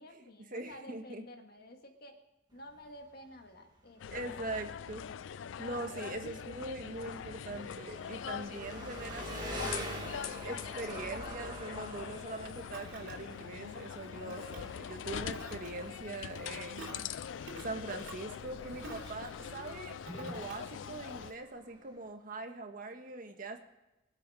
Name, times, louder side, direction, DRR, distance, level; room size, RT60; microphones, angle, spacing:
voice 1, 0.0-2.2 2.5-4.1, left 1 dB, 55° left, 4 dB, 1.8 m, -51 dB
voice 2, 0.5-1.2 4.1-5.0 5.6-9.9 10.4-23.6, right 2 dB, 50° right, 5 dB, 1.5 m, -42 dB
Engine, 2.5-22.1, right 1 dB, 25° right, 2.2 m, -47 dB
sound 1, 4.0-21.3, left 8 dB, 90° left, 0.4 m, -43 dB
Ocean, 12.3-21.3, right 2 dB, 80° right, 3.4 m, -51 dB
23.0 x 8.4 x 4.9 m, 0.99 s
head